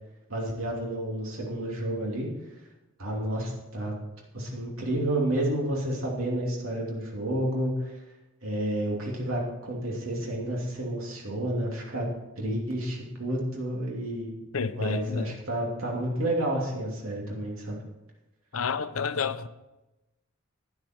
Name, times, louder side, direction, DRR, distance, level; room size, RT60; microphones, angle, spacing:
voice 1, 0.3-2.3 3.0-3.9 4.3-7.9 8.4-12.1 12.4-14.3 14.6-17.8, right 1 dB, 80° right, 2.8 m, -30 dB
voice 2, 14.5-15.3 18.5-19.5, left 5 dB, 90° left, 0.7 m, -30 dB
12.0 x 10.5 x 4.6 m
head